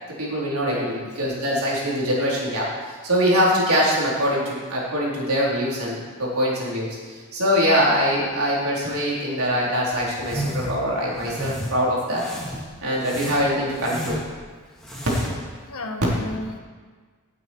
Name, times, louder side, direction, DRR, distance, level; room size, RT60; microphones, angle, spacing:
voice 1, 0.2-12.2 12.8-14.2, equal, 90° right, -5 dB, 4.0 m, -23 dB
voice 2, 0.7-1.1 15.7-16.6, left 1 dB, 80° left, 4 dB, 1.4 m, -33 dB
sound 1, 10.2-10.8 11.1-11.7 12.1-12.7 13.0-14.4 14.8-15.4, equal, 5° left, 2.1 m, -32 dB
17.0 x 8.4 x 4.6 m, 1.5 s
head